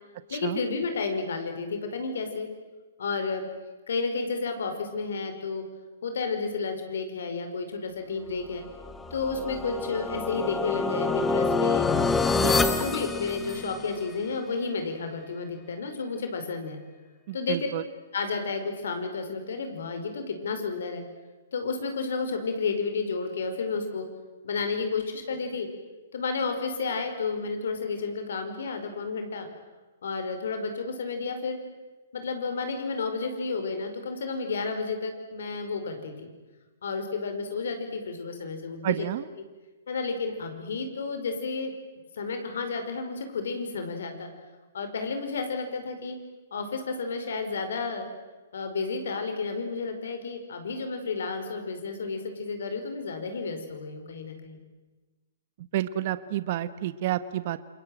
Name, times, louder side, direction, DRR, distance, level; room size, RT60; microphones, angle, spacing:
voice 1, 0.3-2.5 3.0-3.5 3.9-5.6 6.0-8.6 9.1-11.9 12.4-16.8 17.3-17.6 18.1-21.0 21.5-24.1 24.4-25.7 26.1-29.5 30.0-31.6 32.1-36.3 36.8-39.1 39.9-41.7 42.1-44.3 44.7-46.2 46.5-48.0 48.5-54.6, left 4 dB, 75° left, 7 dB, 5.2 m, -31 dB
sound 1, 8.8-14.0, left 3 dB, 10° left, 1.5 m, -27 dB
voice 2, 17.3-17.8 38.8-39.2 55.7-57.6, right 13 dB, 50° right, 14 dB, 1.2 m, -29 dB
28.0 x 21.5 x 9.2 m, 1.2 s
hypercardioid pair, 145°, 0 cm